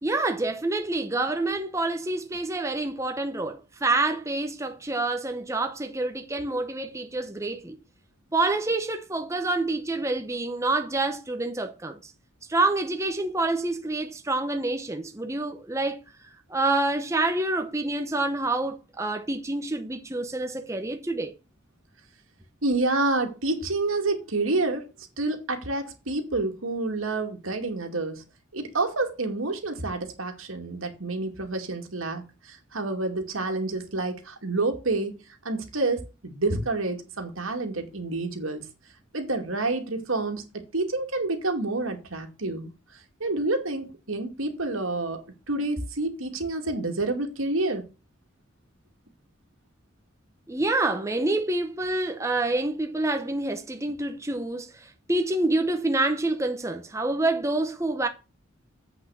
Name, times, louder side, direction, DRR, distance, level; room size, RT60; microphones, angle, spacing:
voice 1, 0.0-7.8 8.3-12.1 12.5-16.0 16.5-21.3 50.5-58.1, right 2 dB, 15° right, 0.8 m, -27 dB
voice 2, 22.6-24.9 25.2-28.2 28.5-35.2 35.4-38.6 39.1-42.7 43.2-47.9, right 2 dB, 90° right, 2.3 m, -28 dB
8.1 x 6.0 x 6.4 m
head